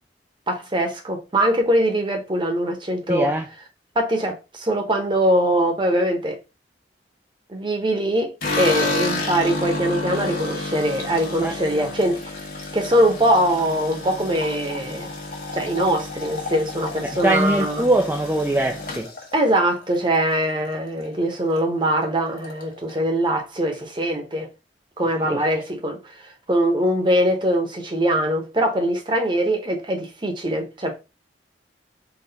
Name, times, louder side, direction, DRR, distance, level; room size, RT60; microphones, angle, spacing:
voice 1, 0.5-3.3 3.9-6.4 7.5-12.2 12.7-15.1 15.5-17.9 19.3-24.5 25.0-31.0, right 1 dB, 25° right, 0.9 m, -22 dB
voice 2, 3.1-3.5 11.4-11.9 17.0-19.1 25.3-25.4, right 1 dB, 10° right, 0.3 m, -22 dB
sound 1, 8.4-20.7 21.0-21.6 21.9-22.0 22.3-23.0, left 2 dB, 55° left, 1.0 m, -30 dB
4.0 x 2.4 x 3.9 m
head